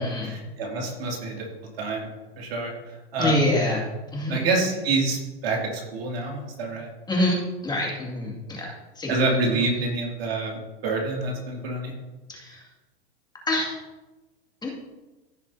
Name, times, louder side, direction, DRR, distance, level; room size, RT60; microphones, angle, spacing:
voice 1, 0.2-1.4 1.8-2.1 2.4-3.4 4.3-6.9 9.1-11.9, right 3 dB, 75° right, -1 dB, 2.8 m, -27 dB
voice 2, 3.2-3.8 4.1-4.4 7.1-8.7 9.0-9.1 9.5-9.6 12.3-12.6 13.5-13.7 14.6-14.7, left 1 dB, 15° left, -2 dB, 2.3 m, -25 dB
15.0 x 5.8 x 2.8 m, 1.1 s
hypercardioid pair, 120°, 31 cm